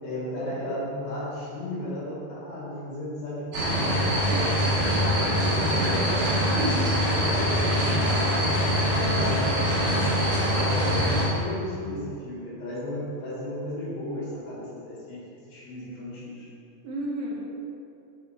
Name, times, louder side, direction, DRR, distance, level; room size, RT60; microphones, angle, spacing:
voice 1, 0.0-4.5 4.8-6.7 7.2-10.0 10.5-16.5, left 1 dB, 75° left, -8 dB, 3.3 m, -35 dB
sound 1, 3.5-11.3, equal, 50° right, 1.7 m, -24 dB
voice 2, 6.5-7.0 7.6-7.7 16.8-17.5, right 1 dB, 85° right, -3 dB, 2.9 m, -31 dB
7.6 x 4.0 x 4.0 m, 2.6 s
omnidirectional pair, 4.2 m